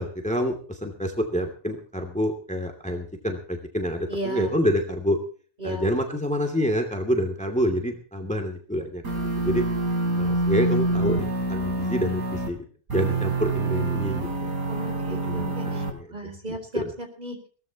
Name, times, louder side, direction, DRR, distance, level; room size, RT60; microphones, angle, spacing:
voice 1, 0.0-5.2 5.6-9.6 10.1-12.6 12.9-14.5 15.2-16.1 16.5-16.9, equal, 5° left, 4 dB, 2.6 m, -27 dB
voice 2, 4.1-4.5 5.6-5.9 14.7-17.4, right 1 dB, 30° right, 4 dB, 4.6 m, -35 dB
sound 1, 9.0-12.5 12.9-15.9, right 2 dB, 85° right, 3.8 m, -26 dB
22.0 x 17.5 x 3.0 m, 0.42 s
omnidirectional pair, 1.5 m